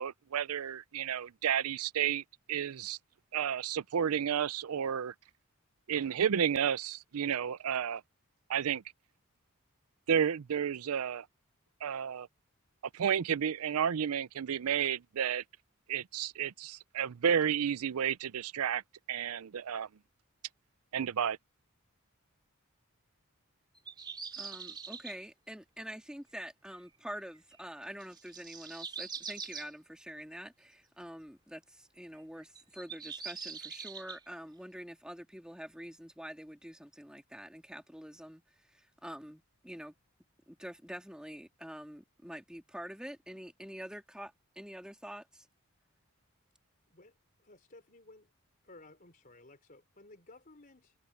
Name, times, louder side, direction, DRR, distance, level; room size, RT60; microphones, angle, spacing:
voice 1, 0.0-2.2 2.5-3.0 3.3-5.1 5.9-8.0 8.5-8.8 10.1-11.3 11.8-12.3 12.9-15.4 15.9-18.8 19.1-19.9 20.9-21.4, right 8 dB, 80° right, 0.5 m, -31 dB
sound 1, 23.8-25.2 27.4-27.6 28.0-29.7 32.2-34.2, right 5 dB, 20° right, 2.6 m, -43 dB
voice 2, 24.3-38.4 38.7-39.9 40.5-45.5, equal, 5° right, 2.0 m, -46 dB
voice 3, 47.4-48.3 48.6-50.9, left 2 dB, 40° left, 4.0 m, -56 dB
head